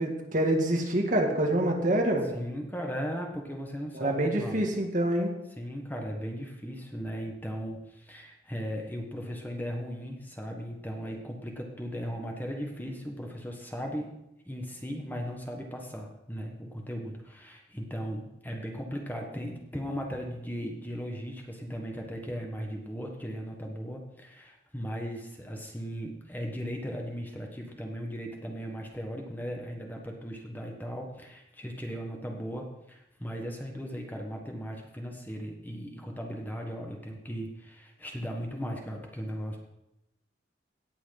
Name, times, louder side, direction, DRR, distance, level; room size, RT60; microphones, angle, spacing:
voice 1, 0.0-2.3 3.9-5.3, right 1 dB, 45° right, 2 dB, 1.9 m, -26 dB
voice 2, 2.3-4.7 5.6-14.1 14.4-39.6, equal, 10° left, 1 dB, 1.5 m, -37 dB
17.5 x 6.1 x 5.9 m, 0.89 s
head